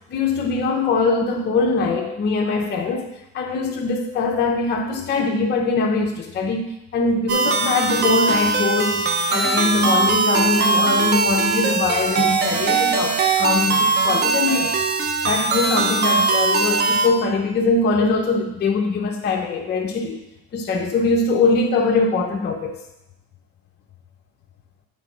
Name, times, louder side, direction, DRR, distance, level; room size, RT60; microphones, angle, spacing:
voice 1, 0.1-3.1 3.3-14.8 15.3-20.2 20.5-22.8, left 3 dB, 35° left, 0 dB, 0.8 m, -22 dB
sound 1, 7.3-17.1, right 4 dB, 35° right, 0.7 m, -20 dB
7.4 x 3.9 x 5.7 m, 0.86 s
cardioid pair, 130°, 31 cm